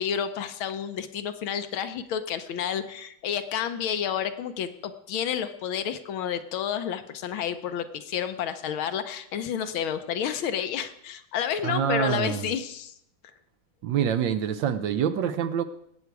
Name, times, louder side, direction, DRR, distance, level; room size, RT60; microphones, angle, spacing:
voice 1, 0.0-12.9, left 8 dB, 75° left, 10 dB, 1.6 m, -30 dB
voice 2, 11.6-12.5 13.8-15.6, right 8 dB, 70° right, 11 dB, 1.3 m, -26 dB
19.0 x 8.0 x 4.7 m, 0.74 s
omnidirectional pair, 2.3 m